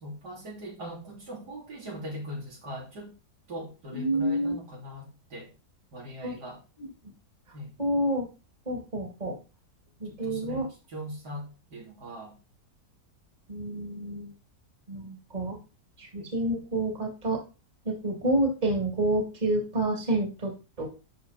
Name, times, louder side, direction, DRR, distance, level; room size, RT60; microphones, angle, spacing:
voice 1, 0.0-3.1 3.5-5.5 5.9-6.6 7.5-7.7 10.1-12.4 16.2-16.3, equal, 75° right, -2 dB, 3.6 m, -40 dB
voice 2, 3.9-4.5 6.2-6.4 7.8-8.3 8.7-9.4 10.0-10.7 13.5-14.3 14.9-15.6 16.0-17.4 17.9-20.5 20.8-20.9, right 1 dB, 25° right, 1 dB, 2.3 m, -28 dB
11.5 x 4.8 x 4.1 m, 0.32 s
omnidirectional pair, 1.8 m